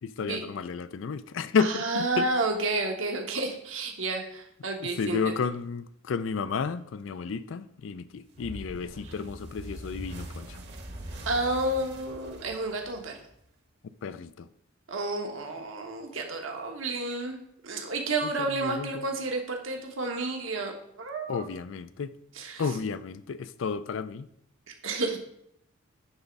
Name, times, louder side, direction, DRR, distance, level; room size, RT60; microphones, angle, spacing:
voice 1, 0.0-2.3 5.0-10.6 14.0-14.5 18.6-19.0 21.3-22.1 22.6-24.3, left 5 dB, 65° left, 0.4 m, -32 dB
voice 2, 1.6-5.3 9.0-9.1 11.2-13.2 14.9-17.4 17.6-20.7 21.0-21.5 22.3-22.7 24.7-25.2, right 2 dB, 75° right, 1.4 m, -31 dB
sound 1, 8.4-13.5, right 1 dB, 55° right, 1.2 m, -42 dB
9.7 x 3.5 x 5.3 m
head